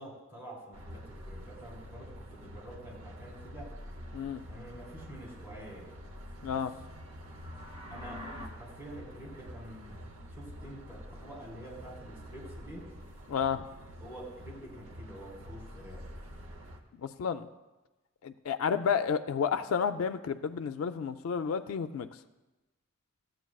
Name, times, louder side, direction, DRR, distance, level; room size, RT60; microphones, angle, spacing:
voice 1, 0.0-3.7 4.5-5.9 6.5-6.6 7.9-10.0 10.3-12.9 14.0-16.2, right 1 dB, 10° right, -4 dB, 2.1 m, -47 dB
sound 1, 0.7-16.8, equal, 85° right, 0.8 m, -47 dB
voice 2, 6.4-6.7 13.3-13.6 16.9-17.5 18.2-22.1, left 6 dB, 90° left, 10 dB, 0.3 m, -31 dB
sound 2, 7.1-8.5, left 1 dB, 30° right, 1.2 m, -45 dB
13.5 x 7.8 x 2.3 m, 1.1 s
head